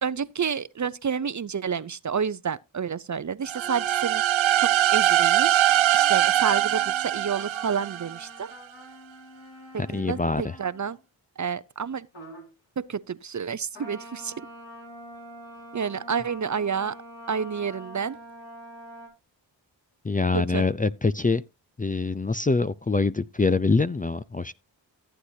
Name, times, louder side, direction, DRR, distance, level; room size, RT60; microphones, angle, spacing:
voice 1, 0.0-8.5 9.9-11.0 11.4-12.1 12.8-14.3 15.7-16.9 17.3-18.2 20.3-20.6, right 7 dB, 40° right, 0.6 m, -30 dB
sound 1, 3.5-11.0 12.1-12.5 13.7-19.1, equal, 80° left, 5.0 m, -45 dB
sound 2, 3.5-8.3, right 13 dB, 90° right, 0.5 m, -22 dB
voice 2, 9.8-10.6 20.0-21.4 21.8-24.5, left 3 dB, 20° left, 0.5 m, -24 dB
14.5 x 8.1 x 2.7 m
cardioid pair, 50°, 45 cm